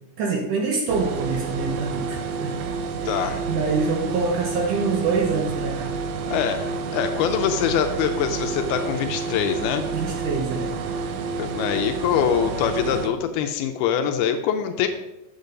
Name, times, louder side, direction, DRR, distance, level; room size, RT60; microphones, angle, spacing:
voice 1, 0.2-2.5 3.2-5.9 9.9-10.7, right 4 dB, 70° right, -1 dB, 2.2 m, -25 dB
sound 1, 0.9-13.1, right 5 dB, 85° right, 1.7 m, -29 dB
voice 2, 3.1-3.4 6.2-9.9 11.4-14.9, left 8 dB, 80° left, 7 dB, 2.4 m, -24 dB
8.0 x 6.7 x 5.2 m, 0.96 s
omnidirectional pair, 4.7 m